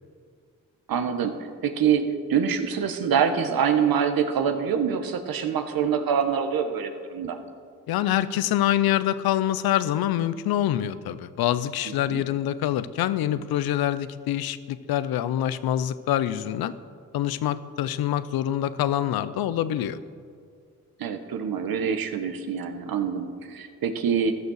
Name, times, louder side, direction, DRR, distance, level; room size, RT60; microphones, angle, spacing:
voice 1, 0.9-1.3 1.6-7.4 12.0-12.2 21.0-24.3, right 7 dB, 75° right, 7 dB, 1.3 m, -25 dB
voice 2, 7.9-16.7 17.1-20.0, left 12 dB, 90° left, 15 dB, 0.6 m, -25 dB
15.0 x 12.0 x 6.4 m, 2.2 s
supercardioid pair, 55°, 35 cm